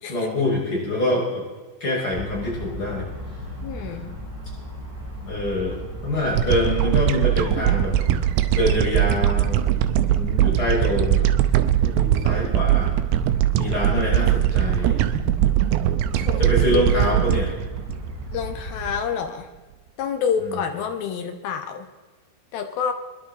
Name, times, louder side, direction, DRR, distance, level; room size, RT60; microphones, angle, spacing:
voice 1, 0.1-1.4 1.8-3.1 5.3-8.0 8.5-9.7 10.1-11.3 11.6-12.9 13.5-15.0 16.4-17.5 20.4-20.6, left 1 dB, 20° left, -4 dB, 5.9 m, -25 dB
sound 1, 2.1-19.0, equal, 5° right, 2.7 m, -36 dB
voice 2, 3.6-4.1 16.2-17.1 18.3-19.5 20.0-21.9 22.5-22.9, left 7 dB, 70° left, 6 dB, 2.3 m, -28 dB
sound 2, 6.4-18.8, right 12 dB, 80° right, 2.5 m, -21 dB
24.5 x 11.0 x 4.1 m, 1.3 s
omnidirectional pair, 5.6 m